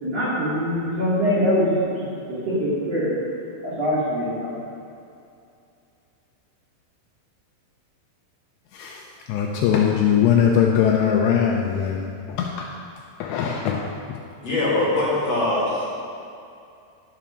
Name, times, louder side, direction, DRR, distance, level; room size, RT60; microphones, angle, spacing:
voice 1, 0.0-3.1 3.6-4.5, equal, 45° right, -9 dB, 2.4 m, -23 dB
voice 2, 9.3-12.7 13.2-13.8, left 8 dB, 80° left, 0 dB, 2.5 m, -21 dB
voice 3, 14.4-15.9, left 2 dB, 50° left, -7 dB, 2.3 m, -22 dB
12.0 x 5.7 x 6.2 m, 2.5 s
omnidirectional pair, 5.3 m